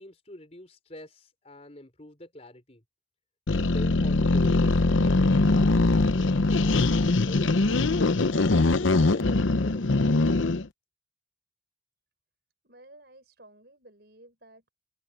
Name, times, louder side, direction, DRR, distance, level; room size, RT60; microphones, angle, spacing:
voice 1, 0.0-2.8 3.5-10.1, left 1 dB, 35° left, 4.5 m, -46 dB
sound 1, 3.5-10.7, left 2 dB, 90° left, 0.8 m, -22 dB
voice 2, 12.6-14.7, right 1 dB, 55° right, 6.8 m, -53 dB
open air
head